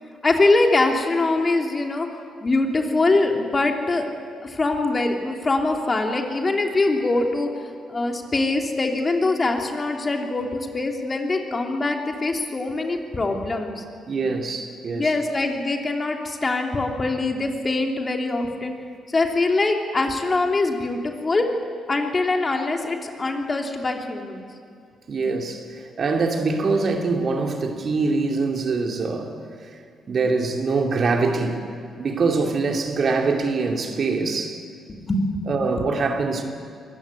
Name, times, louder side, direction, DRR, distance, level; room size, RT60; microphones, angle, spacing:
voice 1, 0.2-2.1 2.4-4.1 4.4-7.5 7.9-13.8 14.9-18.7 19.1-21.4 21.9-24.5 34.9-35.2 35.8-35.9, left 2 dB, 30° left, 3.1 m, -23 dB
voice 2, 14.1-15.1 25.1-29.3 30.1-31.6 32.0-34.6 35.5-36.4, right 4 dB, 50° right, 2.6 m, -24 dB
24.0 x 15.0 x 9.7 m
hypercardioid pair, 40°, 0 cm